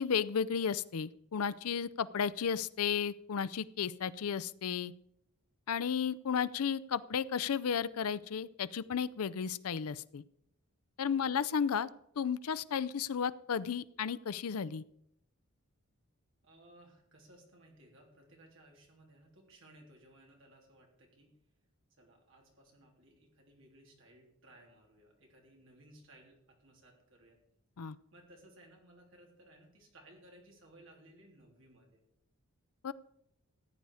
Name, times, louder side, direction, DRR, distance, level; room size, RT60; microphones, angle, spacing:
voice 1, 0.0-4.9 5.7-10.2 11.0-11.9 12.2-14.8 27.8-28.0 32.8-32.9, left 7 dB, 80° left, 17 dB, 0.5 m, -33 dB
voice 2, 11.2-11.6 16.4-21.3 22.0-27.4 28.1-32.0, right 1 dB, 60° right, 0 dB, 3.4 m, -60 dB
14.5 x 9.4 x 4.8 m, 0.75 s
head